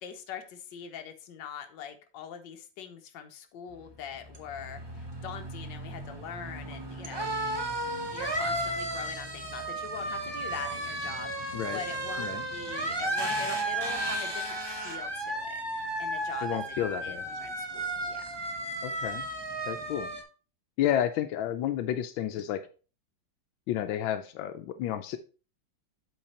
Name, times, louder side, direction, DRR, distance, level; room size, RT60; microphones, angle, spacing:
voice 1, 0.0-7.3 8.1-16.6 17.0-18.4, left 8 dB, 70° left, 6 dB, 1.5 m, -43 dB
sound 1, 3.8-20.2, right 1 dB, 40° right, 0.3 m, -34 dB
voice 2, 16.4-17.2 18.8-19.3 19.7-20.1 20.8-22.7 23.7-25.2, left 11 dB, 90° left, 9 dB, 1.4 m, -31 dB
7.8 x 4.1 x 4.2 m, 0.35 s
omnidirectional pair, 2.1 m